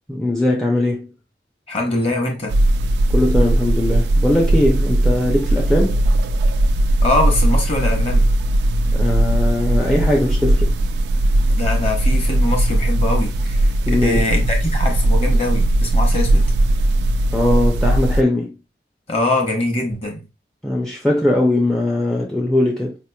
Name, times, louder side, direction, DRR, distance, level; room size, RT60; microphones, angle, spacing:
voice 1, 0.1-1.1 3.1-6.0 8.9-10.8 13.9-14.2 17.3-18.6 20.6-23.0, left 1 dB, ahead, 0.5 m, -20 dB
voice 2, 1.7-2.6 7.0-8.3 11.5-16.5 19.1-20.3, left 2 dB, 35° left, 1.0 m, -23 dB
sound 1, 2.5-18.2, right 1 dB, 70° right, 0.3 m, -18 dB
4.7 x 3.0 x 2.2 m
head